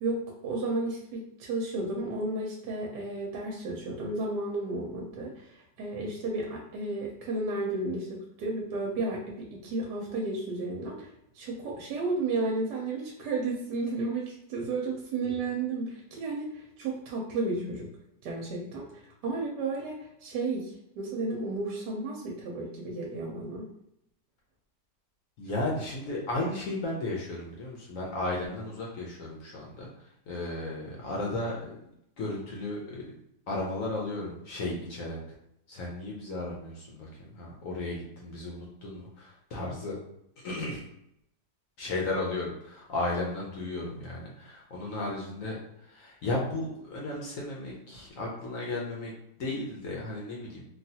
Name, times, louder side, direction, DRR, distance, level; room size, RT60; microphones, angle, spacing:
voice 1, 0.0-17.9 18.2-23.7, right 2 dB, 75° right, -2 dB, 1.2 m, -33 dB
voice 2, 25.4-29.9 30.3-31.7 32.2-33.2 33.5-35.2 35.7-40.0 40.4-40.8 41.8-49.1 49.4-50.6, left 2 dB, 60° left, -3 dB, 0.9 m, -34 dB
3.3 x 2.3 x 2.7 m, 0.79 s
omnidirectional pair, 1.9 m